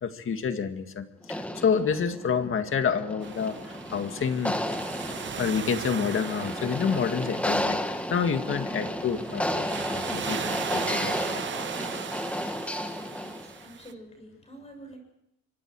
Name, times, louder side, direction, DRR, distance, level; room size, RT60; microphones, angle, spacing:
voice 1, 0.0-4.6 5.4-11.4, left 6 dB, 40° left, 7 dB, 1.9 m, -29 dB
sound 1, 1.2-13.6, left 1 dB, 5° left, 1.5 m, -32 dB
sound 2, 3.2-13.9, right 8 dB, 35° right, 0.9 m, -38 dB
voice 2, 13.0-15.0, right 1 dB, 20° left, 3 dB, 7.0 m, -47 dB
25.5 x 24.5 x 4.7 m, 0.81 s
cardioid pair, 150°, 33 cm